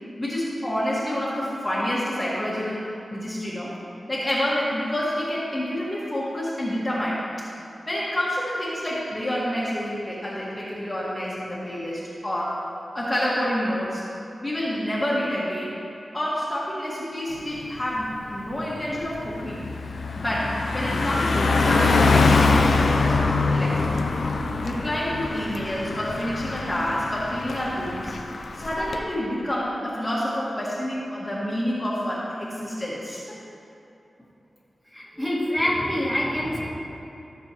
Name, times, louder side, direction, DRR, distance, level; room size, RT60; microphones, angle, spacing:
voice 1, 0.2-2.8 3.1-3.7 4.1-7.2 7.9-12.6 12.9-14.0 14.4-15.8 16.1-19.6 20.2-24.0 24.6-28.1 28.5-33.4, equal, 20° left, -8 dB, 1.9 m, -28 dB
Car passing by, 17.4-17.6 18.0-29.0, left 3 dB, 80° left, 0.6 m, -24 dB
voice 2, 34.9-36.7, equal, 5° right, -7 dB, 2.2 m, -25 dB
15.0 x 6.8 x 3.1 m, 2.7 s
wide cardioid pair, 100°, 0 cm